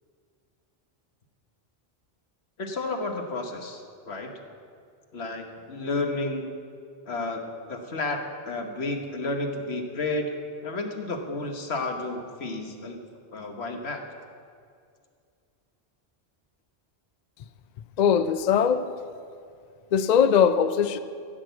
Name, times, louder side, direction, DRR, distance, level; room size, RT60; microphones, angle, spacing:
voice 1, 2.6-4.3 5.1-6.5 7.1-7.4 7.7-8.2 8.4-10.3 10.6-13.0 13.3-14.0, left 2 dB, 80° left, 1.5 m, -31 dB
voice 2, 18.0-18.9 19.9-21.0, left 7 dB, 55° left, 0.5 m, -20 dB
15.0 x 6.2 x 8.1 m
omnidirectional pair, 1.1 m